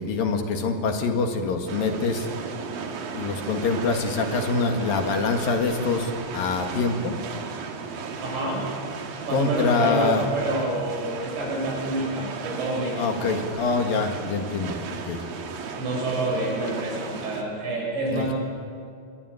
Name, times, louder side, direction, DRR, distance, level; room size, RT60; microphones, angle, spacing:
voice 1, 0.0-2.3 3.1-7.2 9.3-10.3 13.0-15.2 18.1-18.3, left 4 dB, 60° left, 4 dB, 3.2 m, -25 dB
sound 1, 1.7-17.4, right 5 dB, 60° right, 3.6 m, -35 dB
voice 2, 8.2-8.7 9.3-13.3 15.8-18.3, right 2 dB, 80° right, -2 dB, 9.7 m, -28 dB
27.5 x 21.5 x 9.3 m, 2.4 s
omnidirectional pair, 5.1 m